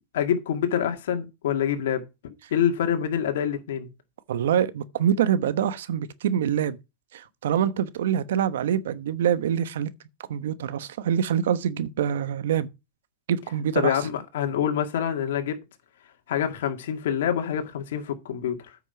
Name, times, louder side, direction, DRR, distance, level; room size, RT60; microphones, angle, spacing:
voice 1, 0.1-2.1 2.5-3.9 13.8-15.6 16.3-18.8, left 9 dB, 85° left, 2.0 m, -26 dB
voice 2, 4.3-6.8 7.1-9.9 10.3-12.7 13.3-14.0, right 9 dB, 90° right, 1.0 m, -25 dB
9.0 x 6.2 x 5.8 m
supercardioid pair, 135°, 0 cm